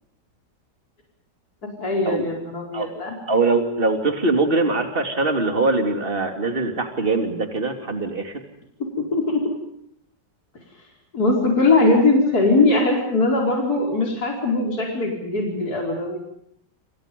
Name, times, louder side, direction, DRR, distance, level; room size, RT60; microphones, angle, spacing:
voice 1, 1.8-3.2 9.0-9.4 11.1-16.2, left 2 dB, 55° left, 0 dB, 5.5 m, -20 dB
voice 2, 3.3-8.3, right 3 dB, 30° right, 5 dB, 3.2 m, -22 dB
29.0 x 27.5 x 5.4 m, 0.70 s
omnidirectional pair, 1.9 m